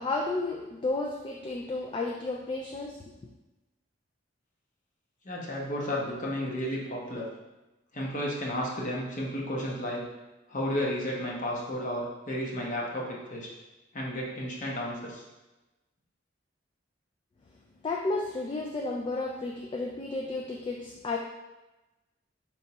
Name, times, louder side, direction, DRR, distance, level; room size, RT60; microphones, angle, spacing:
voice 1, 0.0-3.3 17.8-21.2, left 3 dB, 25° left, 0 dB, 0.3 m, -32 dB
voice 2, 5.2-7.3 7.9-10.1 10.5-13.5 13.9-15.2, equal, 45° left, -3 dB, 0.9 m, -32 dB
4.1 x 3.4 x 2.9 m, 1.0 s
head